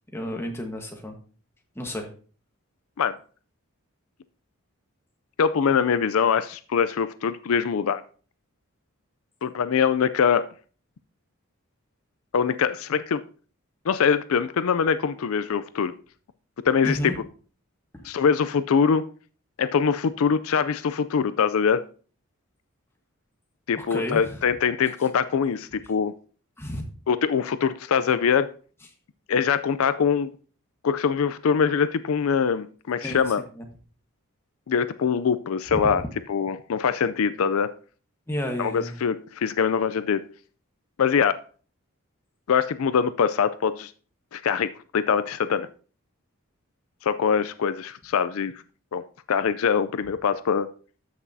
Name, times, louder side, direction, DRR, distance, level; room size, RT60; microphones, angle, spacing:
voice 1, 0.1-1.2 1.7-2.1 16.8-17.2 17.9-18.1 23.8-24.4 26.6-26.9 33.0-33.7 35.7-35.8 38.3-39.0, left 1 dB, 10° left, 2 dB, 1.3 m, -32 dB
voice 2, 5.4-8.0 9.4-10.5 12.3-13.2 13.9-16.0 16.6-17.1 18.0-19.1 19.6-21.8 23.7-26.1 27.1-28.5 29.3-30.3 30.8-33.4 34.7-36.0 36.3-37.7 38.6-40.2 41.0-41.4 42.5-43.9 44.3-45.7 47.0-48.5 48.9-49.0 49.3-50.7, left 6 dB, 75° left, 14 dB, 0.4 m, -23 dB
13.5 x 6.0 x 2.7 m, 0.40 s
head